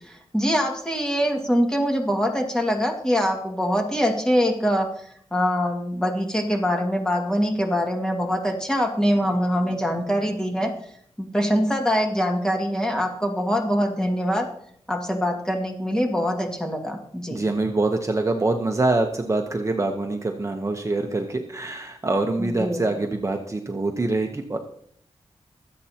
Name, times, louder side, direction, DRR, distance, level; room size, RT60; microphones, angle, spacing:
voice 1, 0.3-4.9 5.3-10.7 11.2-14.5 14.9-17.4 22.4-22.8, equal, 5° left, 1 dB, 2.0 m, -23 dB
voice 2, 17.3-24.6, right 2 dB, 30° right, 3 dB, 1.0 m, -25 dB
24.5 x 8.3 x 2.9 m, 0.65 s
wide cardioid pair, 140°, 11 cm